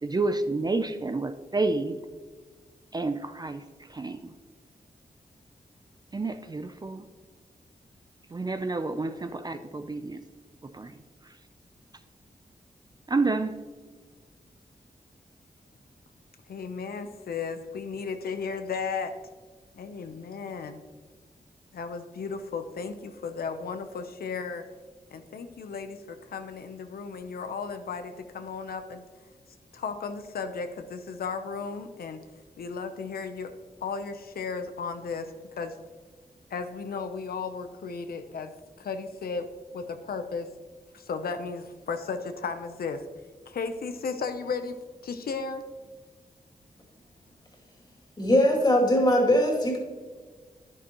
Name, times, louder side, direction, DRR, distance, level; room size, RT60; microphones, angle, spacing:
voice 1, 0.0-2.0 2.9-3.6 3.9-4.3 6.1-7.0 8.3-10.2 10.6-11.0 13.1-13.6, right 3 dB, 25° right, 9 dB, 0.5 m, -29 dB
voice 2, 16.5-19.1 19.7-20.8 21.7-24.6 25.1-29.0 29.7-32.2 32.6-33.5 33.8-35.8 36.5-38.5 38.8-39.5 39.7-40.5 40.9-43.0 43.5-44.8 45.0-45.6, left 5 dB, 90° left, 7 dB, 0.7 m, -35 dB
voice 3, 48.2-49.8, left 1 dB, 30° left, 0 dB, 2.4 m, -21 dB
10.5 x 10.5 x 2.9 m, 1.5 s
wide cardioid pair, 100°, 15 cm